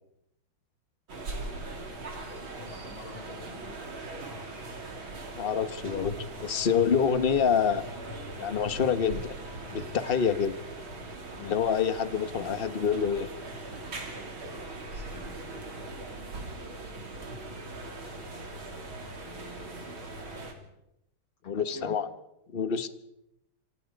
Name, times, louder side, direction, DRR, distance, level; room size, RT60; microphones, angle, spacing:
sound 1, 1.1-20.5, right 2 dB, 75° right, 4.0 m, -40 dB
voice 1, 2.6-4.0 14.9-15.7 19.2-20.0 21.4-22.0, left 2 dB, 75° left, 1 dB, 7.7 m, -47 dB
voice 2, 5.3-7.8 8.4-9.3 9.7-10.6 11.4-13.3 21.4-22.1 22.5-22.9, left 7 dB, 35° left, 12 dB, 1.0 m, -27 dB
28.0 x 25.5 x 5.3 m, 0.86 s
omnidirectional pair, 2.3 m